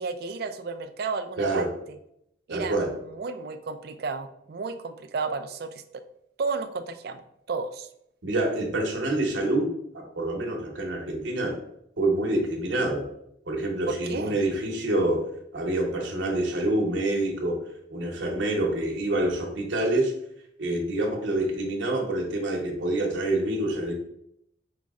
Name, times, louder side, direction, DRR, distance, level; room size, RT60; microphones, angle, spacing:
voice 1, 0.0-2.0 2.5-5.8 6.4-7.9 13.9-14.4, right 4 dB, 55° right, 9 dB, 0.4 m, -33 dB
voice 2, 1.4-1.7 2.5-2.9 8.2-11.5 12.0-13.1 13.5-15.2 15.5-17.6 17.9-20.1 20.6-23.9, right 1 dB, 75° right, 0 dB, 1.0 m, -26 dB
5.1 x 2.1 x 3.5 m, 0.74 s
head